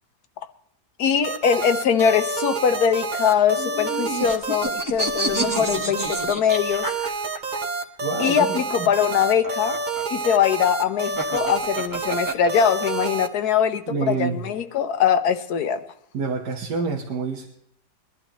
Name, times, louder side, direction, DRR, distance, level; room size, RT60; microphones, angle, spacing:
voice 1, 1.0-6.9 8.2-9.8 10.1-15.8, left 8 dB, 70° left, 1.3 m, -22 dB
sound 1, 1.2-13.3, right 3 dB, 35° right, 1.0 m, -28 dB
sound 2, 3.6-7.6 8.8-13.1, right 1 dB, 15° right, 1.2 m, -30 dB
voice 2, 8.0-8.9 13.9-14.5 16.1-17.5, right 4 dB, 85° right, 1.9 m, -27 dB
22.5 x 11.5 x 3.0 m
omnidirectional pair, 1.8 m